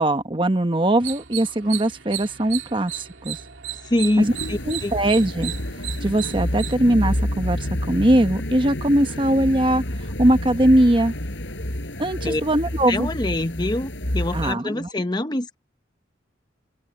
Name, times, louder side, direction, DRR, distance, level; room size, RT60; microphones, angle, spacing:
voice 1, 0.0-3.4 4.2-4.3 4.7-5.5 6.0-7.6 7.9-11.1 12.0-13.1 14.3-14.9, right 1 dB, 25° right, 1.2 m, -20 dB
sound 1, 0.9-6.8, right 12 dB, 85° right, 2.7 m, -35 dB
voice 2, 3.8-4.9 12.2-12.4 12.9-15.6, left 1 dB, 20° left, 0.8 m, -25 dB
sound 2, 4.2-14.5, left 1 dB, 75° left, 4.8 m, -29 dB
open air
head